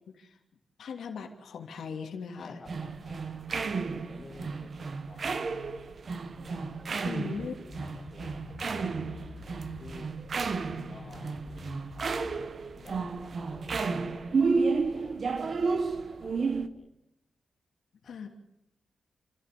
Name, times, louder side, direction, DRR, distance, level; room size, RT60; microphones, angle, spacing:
voice 1, 0.1-0.4 0.8-2.6 7.0-7.5 18.0-18.3, left 6 dB, 90° left, 3 dB, 3.0 m, -39 dB
voice 2, 2.3-6.0 6.8-9.3 9.8-14.6 14.9-16.9 18.0-18.3, left 3 dB, 25° left, 2 dB, 3.3 m, -53 dB
sound 1, 2.7-16.7, right 4 dB, 45° right, 1.1 m, -32 dB
Musical instrument, 4.7-16.5, left 5 dB, 45° left, 2.8 m, -51 dB
29.5 x 15.0 x 6.9 m, 0.87 s
wide cardioid pair, 155°, 0 cm